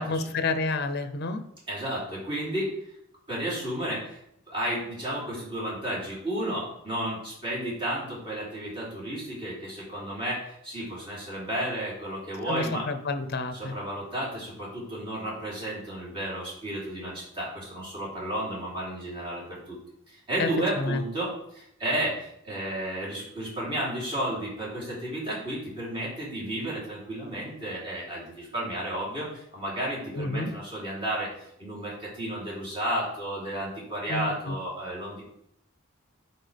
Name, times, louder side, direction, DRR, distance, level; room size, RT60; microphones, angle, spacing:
voice 1, 0.0-1.4 12.5-13.7 20.4-21.0 30.1-30.5 34.1-34.6, left 3 dB, 50° left, 9 dB, 0.6 m, -29 dB
voice 2, 1.7-2.7 3.3-4.0 4.5-10.4 10.6-12.8 13.5-17.1 17.4-19.4 20.3-21.3 21.8-22.1 22.5-28.2 28.5-29.3 29.5-31.3 31.6-35.2, right 1 dB, 25° right, -7 dB, 3.2 m, -32 dB
10.5 x 4.4 x 3.4 m, 0.76 s
head